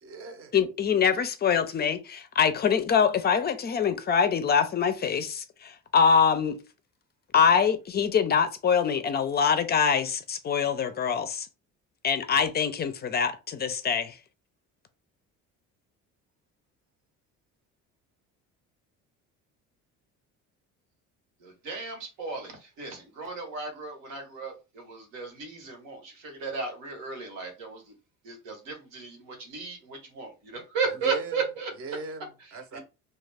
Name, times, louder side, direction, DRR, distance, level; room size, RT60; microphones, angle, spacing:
voice 1, 0.0-0.5 30.9-31.4 31.8-32.8, right 4 dB, 40° right, 0.7 m, -39 dB
voice 2, 0.5-6.6 7.3-11.5 12.0-14.2, left 6 dB, 30° left, 0.4 m, -24 dB
voice 3, 21.4-27.9 28.2-31.7 32.7-32.8, right 4 dB, 85° right, 1.2 m, -35 dB
2.3 x 2.3 x 3.3 m
cardioid pair, 100°, 33 cm